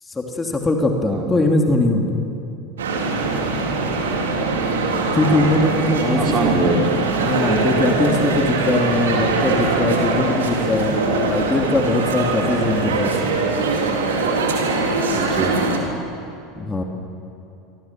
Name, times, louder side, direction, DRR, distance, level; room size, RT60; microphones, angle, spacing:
voice 1, 0.1-2.2 5.1-6.5 7.2-11.0 11.3-13.2 16.6-16.8, left 2 dB, 15° left, 2 dB, 3.1 m, -21 dB
voice 2, 1.1-1.4 5.2-5.6 6.1-7.0 12.9-13.2 15.1-15.9, right 3 dB, 30° right, 1 dB, 4.4 m, -24 dB
sound 1, 2.8-15.8, right 3 dB, 70° right, 3.7 m, -21 dB
27.5 x 24.5 x 7.6 m, 2.7 s
figure-of-eight pair, 75°, 0 cm